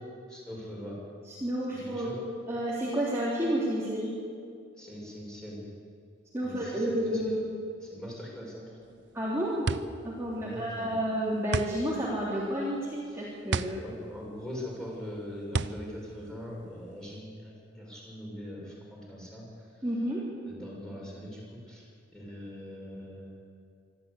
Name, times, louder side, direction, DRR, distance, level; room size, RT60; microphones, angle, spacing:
voice 1, 0.3-1.0 1.7-2.2 4.8-5.7 6.4-7.2 7.8-8.9 10.3-11.0 13.1-13.3 13.7-19.9 20.4-21.8 22.1-23.4, equal, 5° left, -4 dB, 6.8 m, -42 dB
voice 2, 1.3-2.2 2.5-4.1 6.3-7.5 9.1-9.7 10.0-13.8 19.8-20.2, equal, 15° right, -8 dB, 3.4 m, -30 dB
sound 1, 8.8-17.2, right 4 dB, 65° right, 0.6 m, -35 dB
25.0 x 13.5 x 8.5 m, 2.2 s
head